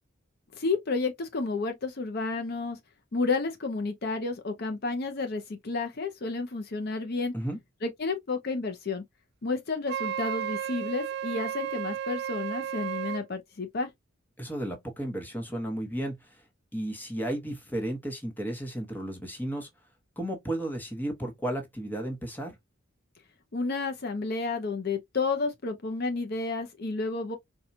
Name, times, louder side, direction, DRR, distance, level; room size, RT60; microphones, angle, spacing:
voice 1, 0.5-2.8 3.1-7.3 7.8-9.0 9.4-13.9 23.5-27.4, left 3 dB, 50° left, 0.6 m, -31 dB
Wind instrument woodwind instrument, 9.9-13.2, right 9 dB, 55° right, 0.3 m, -33 dB
voice 2, 14.4-16.4 16.7-19.7 20.2-22.6, right 1 dB, 10° left, 1.0 m, -33 dB
4.3 x 2.3 x 2.6 m
head